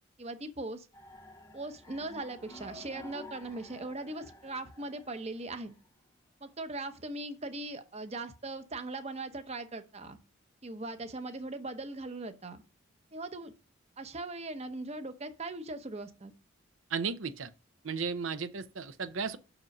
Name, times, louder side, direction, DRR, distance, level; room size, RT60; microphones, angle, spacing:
voice 1, 0.2-0.9 1.5-5.7 6.4-10.2 10.6-12.6 13.1-13.5 14.0-16.3, right 2 dB, 30° right, 0.8 m, -40 dB
sound 1, 0.9-5.9, left 1 dB, 15° left, 0.9 m, -51 dB
voice 2, 16.9-17.5 17.8-19.4, right 5 dB, 70° right, 0.6 m, -34 dB
6.1 x 5.0 x 5.3 m
head